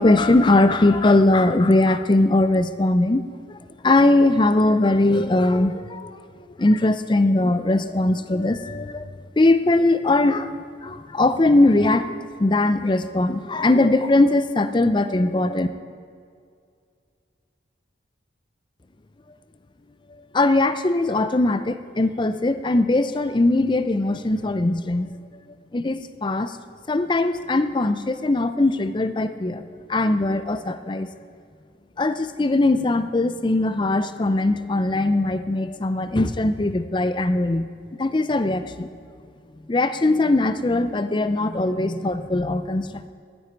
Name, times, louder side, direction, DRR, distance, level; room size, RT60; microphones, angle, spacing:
voice 1, 0.0-3.2 3.5-3.6 3.8-6.1 6.6-9.1 9.4-10.5 10.8-15.7 20.3-25.1 25.7-26.6 26.9-29.6 29.9-31.1 32.0-37.7 38.0-38.9 39.7-43.1, left 2 dB, 25° left, 11 dB, 0.5 m, -20 dB
15.5 x 11.5 x 4.6 m, 2.3 s
head